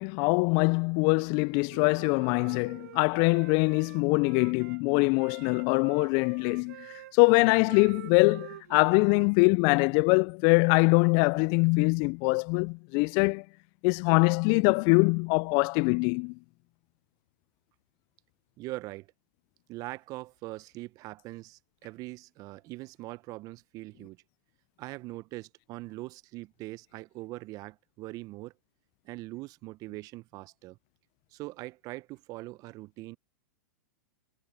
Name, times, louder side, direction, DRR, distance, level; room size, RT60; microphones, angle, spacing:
voice 1, 0.0-6.9 7.1-13.4 13.8-16.3, left 34 dB, 45° left, 0.4 m, -23 dB
Wind instrument woodwind instrument, 1.2-4.8 5.2-9.3, right 15 dB, 60° right, 6.1 m, -48 dB
voice 2, 18.6-19.1 19.7-24.2 24.8-28.5 29.0-30.8 31.3-33.2, right 19 dB, 40° right, 0.8 m, -42 dB
hypercardioid pair, 105°, 10 cm